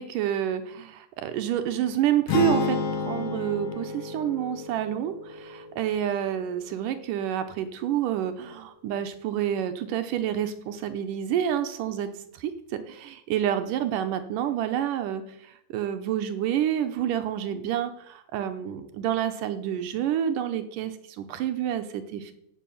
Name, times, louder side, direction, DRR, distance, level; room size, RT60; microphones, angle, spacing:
voice 1, 0.0-22.3, right 10 dB, 75° right, 9 dB, 2.2 m, -28 dB
sound 1, 2.3-6.4, left 4 dB, 75° left, 3.6 m, -31 dB
16.0 x 6.4 x 7.1 m, 0.81 s
omnidirectional pair, 4.2 m